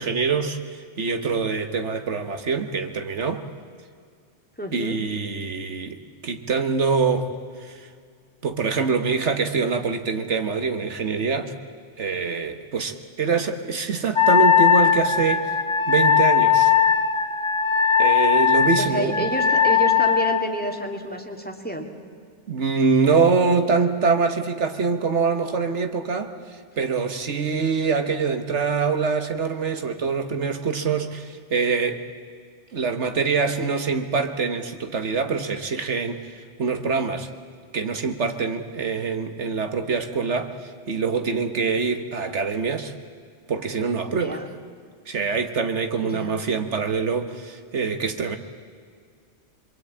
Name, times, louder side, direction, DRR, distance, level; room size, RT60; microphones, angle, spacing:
voice 1, 0.0-3.4 4.7-7.3 7.6-7.9 8.4-11.5 12.0-15.5 15.9-16.7 18.0-19.3 22.5-32.0 32.7-37.3 37.7-42.9 43.5-44.4 45.1-48.4, right 5 dB, 70° right, 7 dB, 1.7 m, -24 dB
voice 2, 4.6-5.0 18.8-21.9 44.1-44.5 46.0-46.4, right 1 dB, 10° left, 2 dB, 2.5 m, -29 dB
Wind instrument woodwind instrument, 14.1-20.5, left 8 dB, 25° left, 1.1 m, -19 dB
26.0 x 23.5 x 8.8 m, 2.2 s
omnidirectional pair, 1.2 m